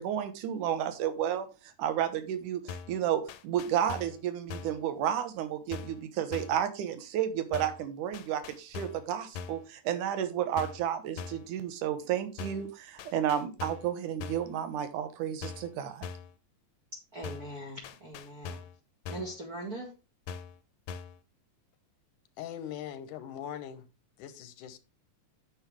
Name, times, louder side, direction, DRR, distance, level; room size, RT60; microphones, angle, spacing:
voice 1, 0.0-16.1, right 10 dB, 80° right, 2.6 m, -32 dB
sound 1, 2.7-3.0 3.3-4.2 4.5-4.8 5.7-6.0 6.3-6.6 7.5-7.9 8.1-9.1 9.3-9.7 10.6-10.9 11.2-11.5 12.4-12.7 13.0-13.9 14.2-14.5 15.4-15.7 16.0-16.4 17.2-17.6 17.8-18.8 19.1-19.4 20.3-20.6 20.9-21.2, left 6 dB, 70° left, 2.0 m, -42 dB
voice 2, 17.1-18.6 19.1-19.9, right 1 dB, 35° right, 1.9 m, -41 dB
voice 3, 22.4-23.8 24.2-24.8, left 10 dB, 90° left, 2.6 m, -41 dB
8.9 x 7.7 x 3.4 m
omnidirectional pair, 3.6 m